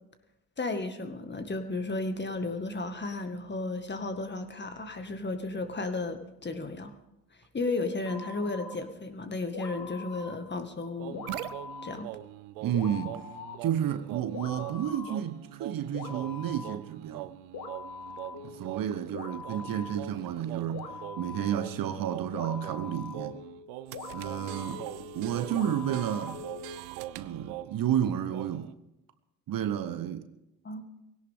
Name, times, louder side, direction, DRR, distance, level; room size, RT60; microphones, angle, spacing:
voice 1, 0.6-6.9 7.5-11.2 11.8-12.1 30.6-30.9, left 3 dB, 20° left, 1.9 m, -34 dB
sound 1, 8.0-8.8 9.5-10.4 11.1-12.0 12.7-13.6 14.3-15.2 15.9-16.8 17.5-18.7 19.1-20.4 20.7-26.8, left 5 dB, 45° left, 2.1 m, -43 dB
sound 2, 11.0-28.0 28.3-28.7, right 16 dB, 70° right, 0.7 m, -42 dB
voice 2, 12.6-13.2 13.6-17.3 18.4-23.4 24.1-24.8 25.1-26.4 27.1-28.7 29.5-30.3, right 10 dB, 45° right, 1.0 m, -31 dB
20.5 x 17.0 x 3.7 m
hypercardioid pair, 60°, 47 cm